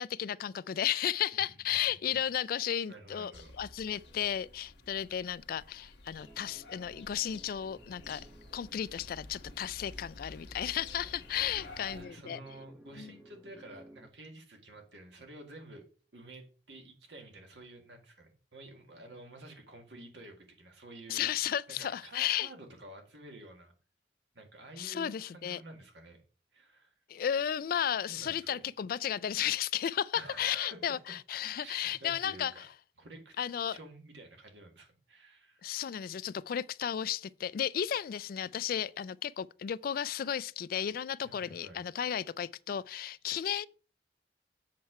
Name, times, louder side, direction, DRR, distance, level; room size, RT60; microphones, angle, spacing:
voice 1, 0.0-3.3 3.6-8.2 8.5-12.4 13.0-13.1 21.1-22.5 24.8-25.6 27.1-32.7 33.4-33.8 35.6-43.7, left 9 dB, 55° left, 0.3 m, -34 dB
voice 2, 1.7-2.2 2.9-3.6 11.0-15.8 16.1-21.3 21.7-23.7 24.3-26.2 26.5-26.9 28.1-28.7 30.2-30.8 31.5-32.6 33.0-33.4 33.6-35.7 41.2-41.8, right 2 dB, 85° right, 1.9 m, -51 dB
sound 1, 3.3-12.0, left 2 dB, 80° left, 1.4 m, -51 dB
sound 2, 6.2-14.1, right 1 dB, 5° right, 0.7 m, -57 dB
7.6 x 4.3 x 5.6 m
head